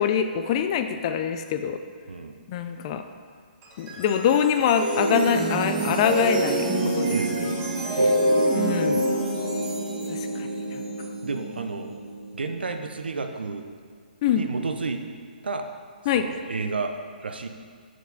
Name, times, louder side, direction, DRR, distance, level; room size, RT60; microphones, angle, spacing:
voice 1, 0.0-1.8 2.5-3.0 3.8-6.7 7.0-7.6 8.5-9.0 10.1-10.8 14.2-14.5 16.1-16.3, left 8 dB, 35° left, 8 dB, 0.4 m, -24 dB
sound 1, 3.6-12.9, right 1 dB, 30° right, 1.4 m, -26 dB
voice 2, 7.8-8.2 11.2-12.0 12.3-13.7 14.3-15.0 15.4-15.7 16.1-16.9 17.2-17.5, right 4 dB, 80° right, 6 dB, 0.6 m, -31 dB
6.1 x 4.6 x 4.0 m, 2.1 s
hypercardioid pair, 140°, 5 cm